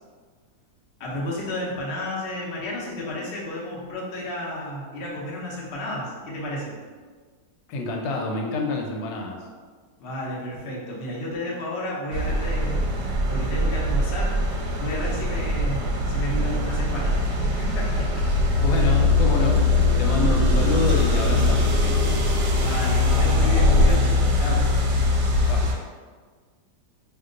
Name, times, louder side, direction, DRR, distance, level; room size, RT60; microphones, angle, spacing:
voice 1, 1.0-6.8 10.0-12.9 13.3-14.4 14.8-18.2 22.6-24.7, left 1 dB, 65° left, -5 dB, 0.6 m, -32 dB
voice 2, 7.7-9.4 18.6-22.0 25.5-25.6, left 2 dB, 85° left, 1 dB, 1.3 m, -27 dB
sound 1, 12.1-25.7, left 2 dB, 75° right, 1.1 m, -21 dB
2.8 x 2.2 x 3.7 m, 1.5 s
omnidirectional pair, 2.0 m